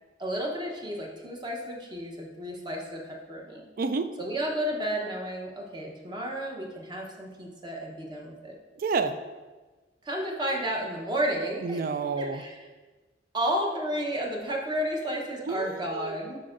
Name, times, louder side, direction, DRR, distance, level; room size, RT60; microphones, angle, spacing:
voice 1, 0.2-3.6 4.2-8.5 10.0-11.9 12.2-12.6 13.3-16.4, equal, 25° right, 0 dB, 0.9 m, -32 dB
voice 2, 3.8-4.1 8.8-9.2 11.6-12.4 15.5-16.2, right 4 dB, 50° right, 10 dB, 0.4 m, -29 dB
9.2 x 5.3 x 2.5 m, 1.3 s
head